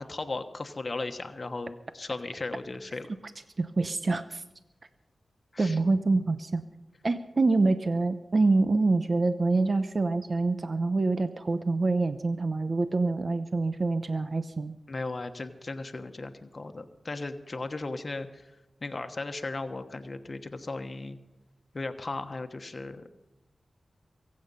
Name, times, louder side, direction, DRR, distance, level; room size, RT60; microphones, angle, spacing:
voice 1, 0.0-3.1 5.5-5.8 14.9-18.5 18.8-21.2 21.7-23.1, left 3 dB, 45° left, 7 dB, 1.2 m, -36 dB
voice 2, 3.6-4.4 5.6-6.6 7.0-14.7, right 3 dB, 50° right, 10 dB, 0.8 m, -26 dB
23.5 x 8.7 x 5.5 m, 0.96 s
cardioid pair, 55°, 0 cm